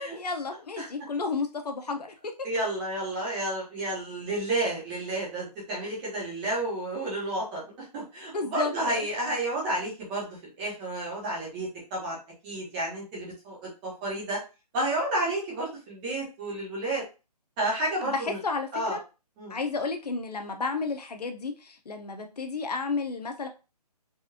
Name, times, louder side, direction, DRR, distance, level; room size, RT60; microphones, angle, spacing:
voice 1, 0.0-2.3 8.3-9.1 18.0-19.0 19.5-23.5, left 4 dB, 75° left, 5 dB, 0.8 m, -32 dB
voice 2, 2.4-7.6 7.9-12.2 12.4-13.6 13.8-14.4 14.7-17.0 17.6-18.4 18.7-19.0 19.4-19.6, right 1 dB, 15° right, -4 dB, 1.1 m, -31 dB
4.0 x 2.5 x 2.7 m, 0.30 s
hypercardioid pair, 165°, 21 cm